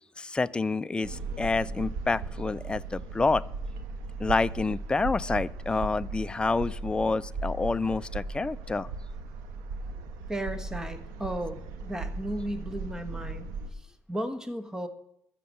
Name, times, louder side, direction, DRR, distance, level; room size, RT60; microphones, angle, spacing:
voice 1, 0.2-3.4 4.2-8.9, left 3 dB, 15° left, 15 dB, 0.4 m, -28 dB
sound 1, 1.0-13.7, right 3 dB, 90° right, 1.3 m, -37 dB
voice 2, 10.3-13.5 13.7-14.9, right 1 dB, 10° right, 9 dB, 1.3 m, -35 dB
14.0 x 6.7 x 7.7 m, 0.80 s
cardioid pair, 100°, 6 cm